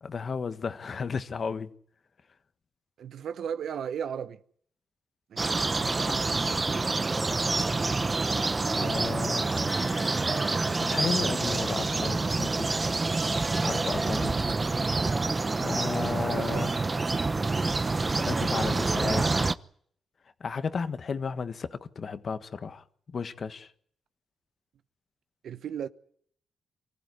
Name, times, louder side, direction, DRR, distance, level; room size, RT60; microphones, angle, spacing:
voice 1, 0.0-1.7 8.7-9.7 10.8-12.7 13.6-14.4 15.6-16.7 17.9-18.0 18.2-19.5 20.4-23.7, left 5 dB, 50° left, 1.5 m, -34 dB
voice 2, 3.0-4.4 5.3-7.1 8.7-8.9 16.3-16.7 25.4-25.9, right 8 dB, 75° right, 1.0 m, -37 dB
sound 1, 5.4-19.5, right 3 dB, 30° right, 0.9 m, -27 dB
sound 2, 9.7-12.6, left 2 dB, 25° left, 2.8 m, -46 dB
24.5 x 15.0 x 9.7 m
cardioid pair, 70°, 0 cm